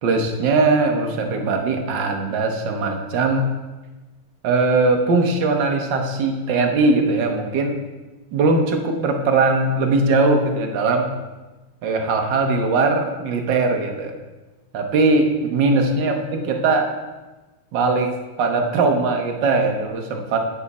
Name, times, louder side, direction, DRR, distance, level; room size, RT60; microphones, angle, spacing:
voice 1, 0.0-3.4 4.4-7.8 8.3-11.1 11.8-14.2 14.7-16.9 17.7-18.1 18.4-20.4, right 3 dB, 60° right, 3 dB, 1.5 m, -20 dB
9.7 x 7.2 x 4.1 m, 1.2 s
omnidirectional pair, 2.4 m